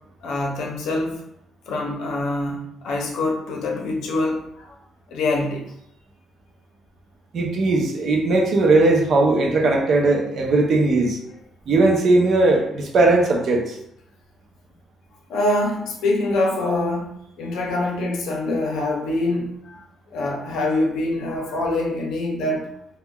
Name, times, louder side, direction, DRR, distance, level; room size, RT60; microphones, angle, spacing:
voice 1, 0.2-1.2 1.7-4.7 5.1-5.6 15.3-19.8 20.1-22.7, left 2 dB, 80° left, 0 dB, 0.6 m, -25 dB
voice 2, 7.3-11.2 11.7-13.8, right 2 dB, 50° right, 1 dB, 0.5 m, -18 dB
3.6 x 2.2 x 2.3 m, 0.76 s
cardioid pair, 155°, 0 cm